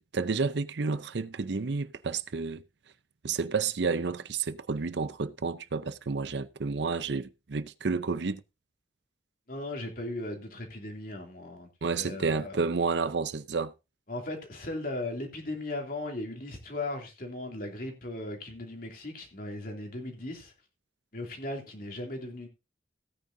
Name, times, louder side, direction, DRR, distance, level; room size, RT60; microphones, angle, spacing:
voice 1, 0.1-2.6 3.2-8.4 11.8-13.7, right 4 dB, 70° right, 0.6 m, -30 dB
voice 2, 9.5-11.7 11.9-12.6 14.1-20.5 21.1-22.5, left 2 dB, 50° left, 2.8 m, -37 dB
16.5 x 9.2 x 2.7 m
head